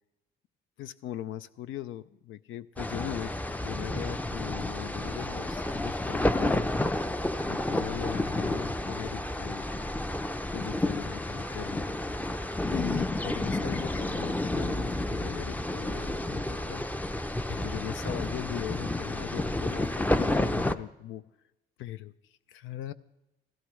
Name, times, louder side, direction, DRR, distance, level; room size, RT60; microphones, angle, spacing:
voice 1, 0.8-3.3 3.6-6.7 7.5-9.7 10.5-11.9 12.7-17.1 17.4-21.2 21.8-22.9, left 12 dB, 80° left, 13 dB, 0.5 m, -39 dB
sound 1, 2.8-20.7, left 1 dB, 10° left, 0.5 m, -30 dB
sound 2, 11.0-20.5, equal, 40° left, 2.0 m, -48 dB
16.5 x 16.5 x 3.1 m, 0.93 s
cardioid pair, 90°, 20 cm